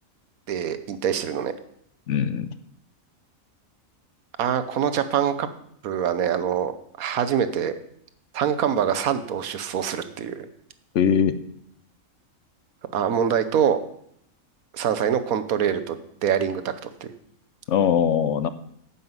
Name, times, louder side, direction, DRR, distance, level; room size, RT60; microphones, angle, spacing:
voice 1, 0.5-1.5 4.4-5.5 5.8-6.7 7.0-7.7 8.3-10.5 12.9-13.8 14.7-16.7 17.0-17.1, right 8 dB, 85° right, 11 dB, 1.3 m, -24 dB
voice 2, 2.1-2.5 10.9-11.4 17.7-18.5, left 8 dB, 65° left, 12 dB, 0.9 m, -21 dB
9.7 x 5.6 x 7.9 m, 0.71 s
omnidirectional pair, 1.5 m